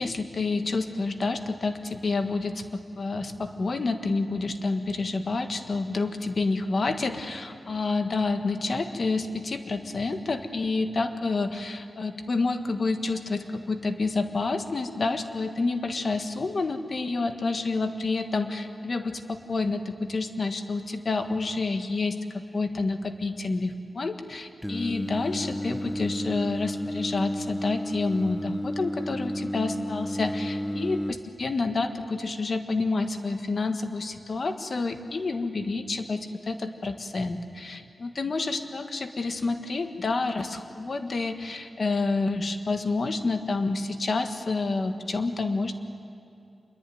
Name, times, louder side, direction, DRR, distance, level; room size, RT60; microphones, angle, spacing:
voice 1, 0.0-45.8, left 3 dB, 45° left, 7 dB, 1.5 m, -29 dB
Singing, 24.6-31.1, equal, 5° left, 0.6 m, -32 dB
27.0 x 22.5 x 9.3 m, 2.5 s
wide cardioid pair, 175°, 0 cm